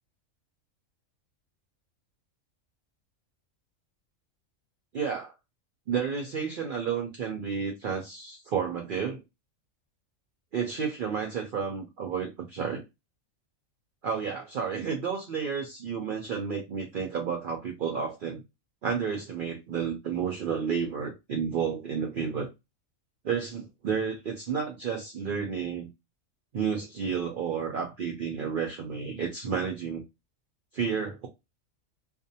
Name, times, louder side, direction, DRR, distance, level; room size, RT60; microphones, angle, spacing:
voice 1, 4.9-5.3 5.9-9.2 10.5-12.8 14.0-18.4 18.8-22.5 23.2-25.9 26.5-30.0 30.7-31.3, right 6 dB, 75° right, 0.4 m, -31 dB
2.5 x 2.0 x 2.7 m
omnidirectional pair, 1.4 m